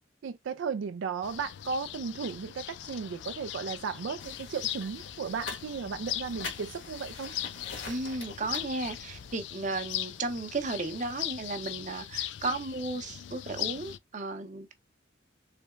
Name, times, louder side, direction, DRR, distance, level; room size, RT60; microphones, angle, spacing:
voice 1, 0.2-7.3, right 5 dB, 80° right, 0.4 m, -35 dB
sound 1, 1.2-14.0, left 12 dB, 65° left, 0.3 m, -39 dB
sound 2, 4.2-9.4, left 4 dB, 85° left, 1.4 m, -44 dB
voice 2, 7.9-14.7, right 3 dB, 40° right, 0.7 m, -34 dB
3.8 x 3.3 x 2.4 m
head